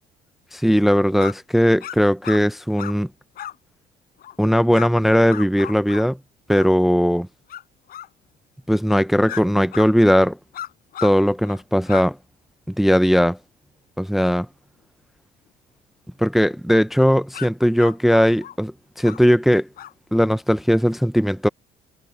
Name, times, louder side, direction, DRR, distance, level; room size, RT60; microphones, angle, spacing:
voice 1, 0.5-3.1 4.4-6.2 6.5-7.3 8.7-10.4 11.0-12.2 12.7-13.4 14.0-14.5 16.2-19.7 20.1-21.5, equal, ahead, 0.5 m, -18 dB
sound 1, 1.2-1.3 1.8-2.0 2.2-2.4 2.8-3.0 3.3-3.6 4.2-4.4 4.7-4.9 5.3-6.1 6.5-6.7 7.5-7.6 7.9-8.1 9.3-9.4 9.7-9.9 10.5-11.1 11.4-11.6 11.9-12.1 17.3-17.5 17.8-18.6 19.0-19.2 19.8-19.9, left 11 dB, 60° left, 5.2 m, -35 dB
cardioid pair, 110°, 17 cm